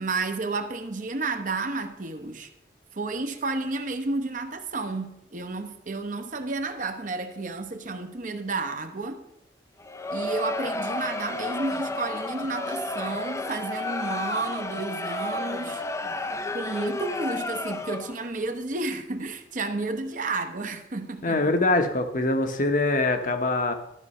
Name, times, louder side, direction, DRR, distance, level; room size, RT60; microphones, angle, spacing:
voice 1, 0.0-2.5 2.9-9.2 10.1-15.8 16.5-21.5, right 3 dB, 45° right, 0.9 m, -31 dB
Crowd, 9.8-18.3, left 2 dB, 15° left, 0.5 m, -32 dB
voice 2, 21.2-23.7, left 2 dB, 50° left, 1.0 m, -23 dB
13.0 x 6.0 x 5.5 m
head